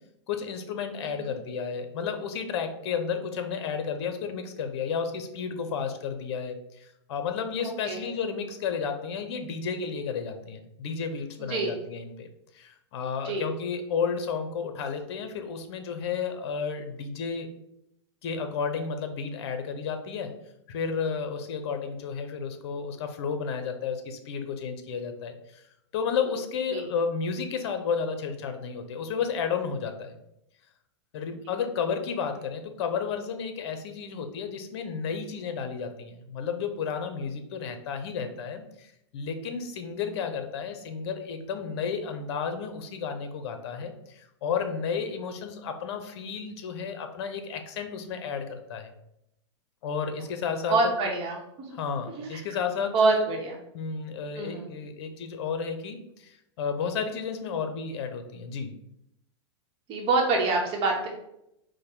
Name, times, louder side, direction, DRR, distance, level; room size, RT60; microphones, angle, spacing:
voice 1, 0.3-12.3 12.5-17.5 18.2-20.3 20.7-25.6 25.9-30.2 31.1-38.9 39.1-48.9 49.8-50.9 51.7-53.3 53.7-58.7, left 6 dB, 60° left, 7 dB, 0.8 m, -32 dB
voice 2, 11.4-11.7 13.2-13.5 26.7-26.9 50.7-51.7 52.1-52.4 52.9-53.6 54.4-54.7 59.9-61.1, right 3 dB, 40° right, 1 dB, 0.9 m, -26 dB
4.7 x 2.2 x 4.5 m, 0.81 s
hypercardioid pair, 120°, 15 cm